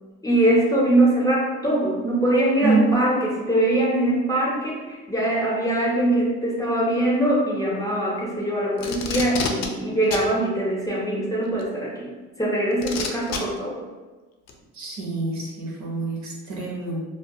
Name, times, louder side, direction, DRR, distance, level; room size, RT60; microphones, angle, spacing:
voice 1, 0.2-12.1 12.4-13.8, right 1 dB, 10° left, -5 dB, 0.6 m, -22 dB
Packing tape duct tape, 8.8-9.7 10.1-10.3 11.6-11.7 12.8-13.4 14.5-14.6, left 5 dB, 60° left, 0.4 m, -28 dB
voice 2, 14.8-17.0, right 3 dB, 70° right, -3 dB, 0.8 m, -26 dB
2.2 x 2.2 x 2.6 m, 1.3 s
cardioid pair, 90°, 30 cm